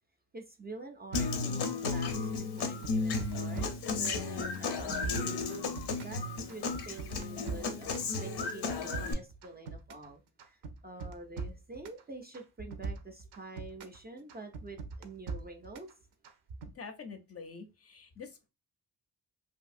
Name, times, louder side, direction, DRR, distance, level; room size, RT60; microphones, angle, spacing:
voice 1, 0.3-5.4 6.0-6.2 6.5-15.9, right 2 dB, 25° right, 4 dB, 0.3 m, -47 dB
Human voice / Acoustic guitar, 1.1-9.1, left 4 dB, 90° left, 0.6 m, -34 dB
sound 1, 1.1-2.3 2.6-4.2 4.5-6.2 6.5-8.1 8.4-10.1 10.4-12.0 12.3-14.0 14.3-15.9 16.2-16.7, right 4 dB, 80° right, 0.5 m, -41 dB
voice 2, 16.7-18.5, left 5 dB, 40° left, 6 dB, 0.4 m, -46 dB
2.7 x 2.6 x 2.4 m, 0.28 s
wide cardioid pair, 130°, 38 cm